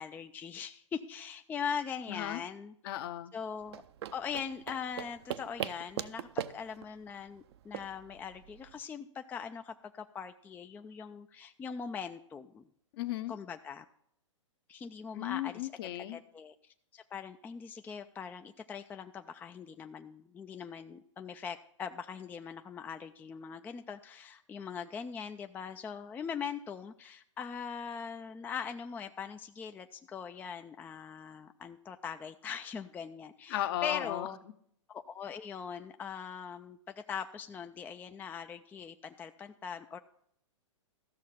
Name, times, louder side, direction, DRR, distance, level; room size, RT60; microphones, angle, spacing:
voice 1, 0.0-3.0 3.3-3.8 4.1-12.7 13.3-13.9 14.7-15.7 16.1-34.4 34.9-40.0, left 6 dB, 10° left, 8 dB, 0.4 m, -41 dB
voice 2, 2.1-2.4 2.8-3.3 12.9-13.3 15.1-16.2 33.5-34.3, left 13 dB, 50° left, 11 dB, 0.9 m, -35 dB
sound 1, 3.6-8.8, right 12 dB, 55° right, 0.6 m, -41 dB
14.0 x 6.4 x 5.6 m, 0.69 s
hypercardioid pair, 120°, 16 cm